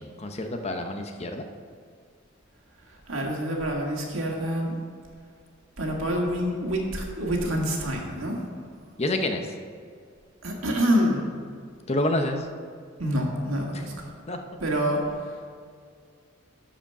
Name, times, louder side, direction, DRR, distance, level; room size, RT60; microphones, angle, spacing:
voice 1, 0.0-1.4 9.0-9.5 11.9-12.5 14.3-14.4, left 1 dB, 30° left, 5 dB, 0.7 m, -28 dB
voice 2, 3.1-4.8 5.8-8.5 10.4-11.3 13.0-14.1 14.6-15.5, equal, 80° right, 0 dB, 1.9 m, -27 dB
12.0 x 5.1 x 5.9 m, 2.1 s
head